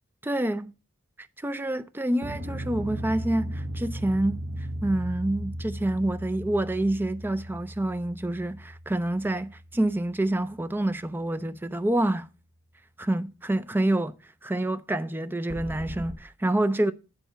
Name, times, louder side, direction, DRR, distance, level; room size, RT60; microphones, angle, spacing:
voice 1, 0.2-0.7 1.4-4.4 4.8-12.3 13.0-14.1 14.4-16.9, right 1 dB, 10° right, 0.4 m, -27 dB
sound 1, 2.2-10.6 15.5-16.2, right 1 dB, 45° right, 0.9 m, -37 dB
9.2 x 4.1 x 5.6 m
head